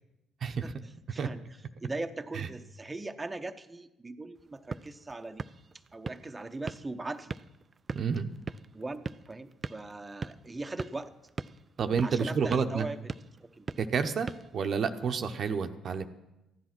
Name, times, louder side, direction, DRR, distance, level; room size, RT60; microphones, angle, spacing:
voice 1, 0.6-1.4 1.8-5.4 5.9-7.3 8.7-11.1 12.0-13.1 13.4-13.7, right 2 dB, 20° right, 6 dB, 0.8 m, -40 dB
sound 1, 4.4-15.2, right 4 dB, 35° right, 0.5 m, -43 dB
voice 2, 7.9-8.3 11.8-12.9 13.8-16.0, right 6 dB, 55° right, 7 dB, 0.8 m, -29 dB
14.5 x 10.5 x 6.0 m, 0.93 s
hypercardioid pair, 55°, 0 cm